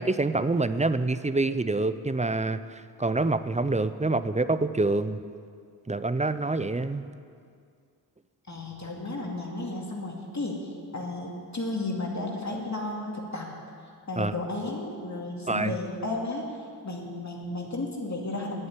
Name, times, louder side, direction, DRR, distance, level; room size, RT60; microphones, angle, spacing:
voice 1, 0.0-2.6 3.0-5.2 5.9-7.0 14.2-14.3 15.5-15.7, right 2 dB, 15° right, 12 dB, 0.6 m, -26 dB
voice 2, 8.5-13.5 14.1-16.5 16.8-18.7, left 2 dB, 40° left, -1 dB, 2.4 m, -33 dB
10.0 x 8.6 x 9.6 m, 2.2 s
cardioid pair, 45°, 44 cm